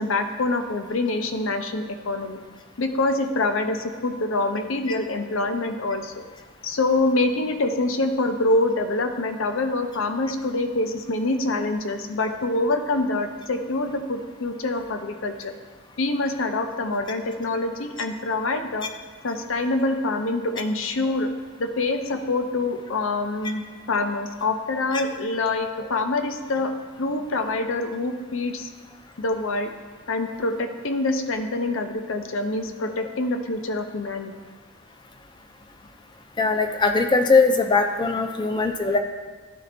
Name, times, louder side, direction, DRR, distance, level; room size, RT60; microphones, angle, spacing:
voice 1, 0.0-2.4 2.8-6.1 6.6-15.5 16.0-18.9 19.2-21.3 21.6-26.7 27.0-28.7 29.2-29.7 30.1-34.3, left 2 dB, 70° left, 6 dB, 0.6 m, -25 dB
voice 2, 36.4-39.0, left 4 dB, 20° left, 6 dB, 0.4 m, -20 dB
11.5 x 4.1 x 2.6 m, 1.4 s
head